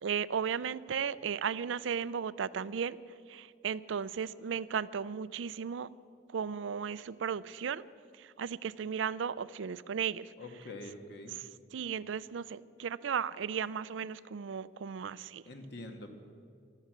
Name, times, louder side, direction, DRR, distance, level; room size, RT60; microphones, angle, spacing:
voice 1, 0.0-3.0 3.3-5.9 6.3-7.8 8.2-10.3 11.3-15.4, right 7 dB, 75° right, 17 dB, 0.4 m, -35 dB
voice 2, 10.4-11.3 15.5-16.1, left 2 dB, 60° left, 5 dB, 1.6 m, -45 dB
14.0 x 12.5 x 7.6 m, 2.2 s
head